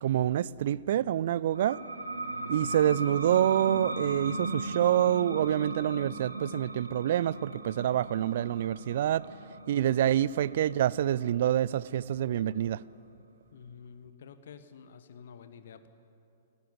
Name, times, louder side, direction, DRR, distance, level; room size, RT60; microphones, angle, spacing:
voice 1, 0.0-1.8 2.5-9.2 9.7-12.8, right 11 dB, 50° right, 0.4 m, -27 dB
sound 1, 1.5-12.8, right 2 dB, 75° right, 1.6 m, -38 dB
voice 2, 13.5-15.9, left 6 dB, 55° left, 1.1 m, -49 dB
18.0 x 17.5 x 9.7 m
figure-of-eight pair, 110°, 0 cm